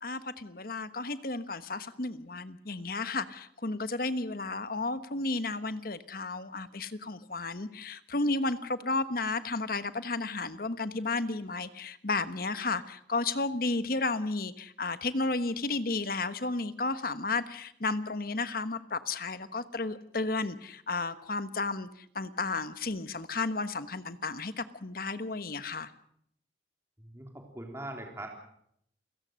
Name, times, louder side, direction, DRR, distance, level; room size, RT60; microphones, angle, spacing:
voice 1, 0.0-25.9, left 3 dB, 55° left, 12 dB, 1.3 m, -33 dB
voice 2, 27.0-28.3, right 1 dB, 15° right, 2 dB, 3.5 m, -41 dB
29.5 x 17.0 x 6.5 m, 0.70 s
head